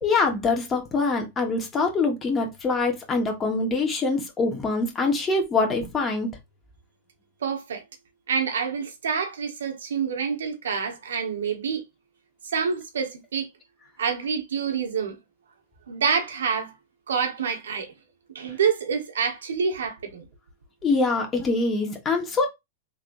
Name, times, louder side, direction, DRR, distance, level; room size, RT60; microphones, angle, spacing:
voice 1, 0.0-6.3 20.8-22.5, left 3 dB, 20° left, 1.2 m, -24 dB
voice 2, 7.4-7.8 8.3-11.8 12.4-13.5 14.0-15.1 15.9-16.7 17.1-17.9 18.3-20.2, right 6 dB, 85° right, 1.1 m, -27 dB
3.6 x 3.3 x 2.5 m
hypercardioid pair, 120°, 0 cm